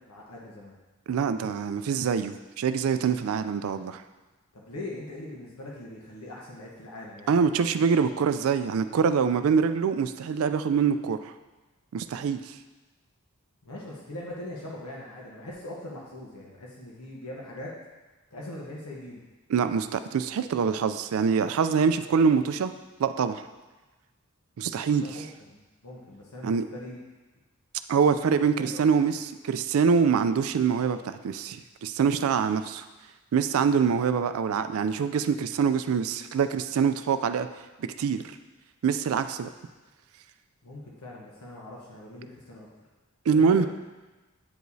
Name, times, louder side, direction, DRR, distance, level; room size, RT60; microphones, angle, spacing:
voice 1, 0.1-0.8 4.5-7.5 13.6-17.7 18.3-19.2 25.0-27.0 28.6-28.8 40.6-42.7 43.3-43.7, left 1 dB, 85° left, -3 dB, 1.0 m, -41 dB
voice 2, 1.1-4.0 7.3-11.3 11.9-12.6 19.5-22.7 23.0-23.4 24.6-25.3 26.4-26.6 27.9-32.8 33.3-37.5 37.8-38.4 38.8-39.5 43.3-43.7, right 6 dB, 70° right, 10 dB, 0.3 m, -25 dB
8.8 x 4.7 x 2.7 m, 1.2 s
head